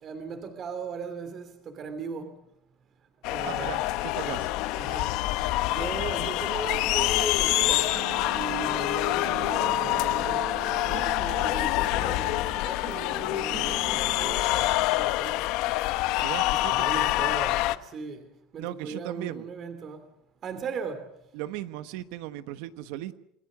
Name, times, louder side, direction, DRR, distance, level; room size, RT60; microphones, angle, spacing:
voice 1, 0.0-2.3 3.3-4.4 4.7-5.2 5.7-7.9 8.3-10.4 10.8-15.4 16.7-18.3 18.5-20.0 20.4-21.0, right 5 dB, 35° right, 2.8 m, -38 dB
sound 1, 3.2-17.8, left 17 dB, 65° left, 0.8 m, -26 dB
voice 2, 3.4-4.5 16.2-17.1 18.6-19.4 21.3-23.2, right 14 dB, 70° right, 1.2 m, -37 dB
sound 2, 7.0-14.4, right 15 dB, 50° right, 1.1 m, -41 dB
28.0 x 19.5 x 6.3 m
cardioid pair, 145°, 0 cm